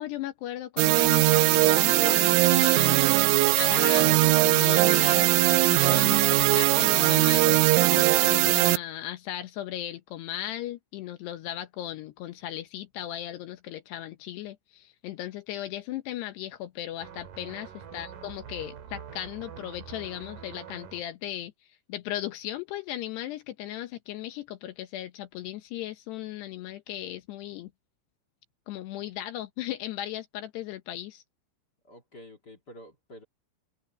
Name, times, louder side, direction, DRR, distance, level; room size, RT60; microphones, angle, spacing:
voice 1, 0.0-21.5 21.9-27.7 28.7-31.2, left 13 dB, 75° left, 2.8 m, -37 dB
sound 1, 0.8-8.8, right 22 dB, 85° right, 3.1 m, -20 dB
sound 2, 17.0-21.0, right 8 dB, 50° right, 3.1 m, -44 dB
voice 2, 31.8-33.2, equal, 35° left, 1.7 m, -49 dB
open air
omnidirectional pair, 5.5 m